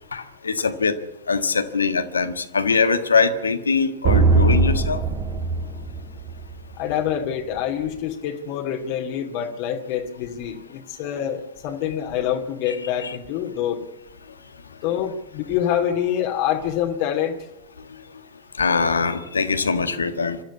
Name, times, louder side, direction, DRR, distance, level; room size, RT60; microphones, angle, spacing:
voice 1, 0.1-1.0 1.3-5.0 12.7-12.8 13.0-13.1 18.6-20.4, left 4 dB, 75° left, 10 dB, 1.6 m, -22 dB
sound 1, 4.0-6.7, right 3 dB, 35° right, 2.4 m, -20 dB
voice 2, 6.8-13.8 14.8-17.4, left 9 dB, 45° left, 3 dB, 2.5 m, -26 dB
25.5 x 13.0 x 8.4 m, 0.84 s
figure-of-eight pair, 90°, 0 cm